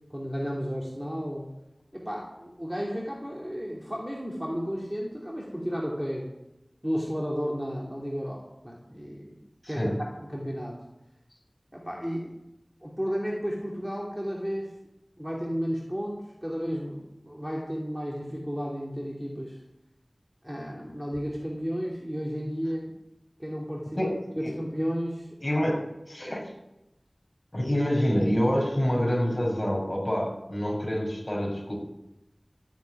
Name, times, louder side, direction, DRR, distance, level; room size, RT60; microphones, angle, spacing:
voice 1, 0.1-1.5 1.9-6.3 6.8-9.4 9.7-9.9 10.3-10.8 11.7-12.3 12.8-14.7 15.2-19.6 20.4-22.9 23.4-24.0 24.4-25.7, equal, 10° right, -3 dB, 3.0 m, -33 dB
voice 2, 9.6-10.0 24.0-24.1 24.4-24.5 25.4-25.8 26.1-26.5 27.5-31.8, equal, 30° left, -2 dB, 6.3 m, -26 dB
14.0 x 8.3 x 9.4 m, 0.92 s
wide cardioid pair, 50°, 0 cm